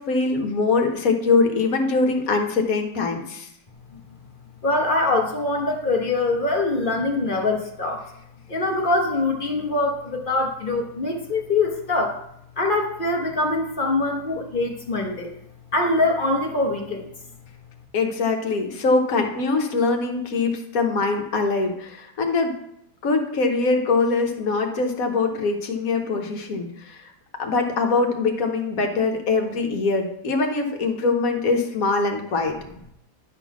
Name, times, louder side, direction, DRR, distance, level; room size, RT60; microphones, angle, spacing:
voice 1, 0.0-3.5 17.9-22.5 23.0-27.1 27.4-32.5, left 3 dB, 60° left, 4 dB, 1.4 m, -23 dB
voice 2, 4.6-8.0 8.5-12.2 12.6-15.3 15.7-17.1, left 2 dB, 35° left, 2 dB, 1.0 m, -23 dB
10.0 x 3.8 x 5.9 m, 0.75 s
omnidirectional pair, 1.8 m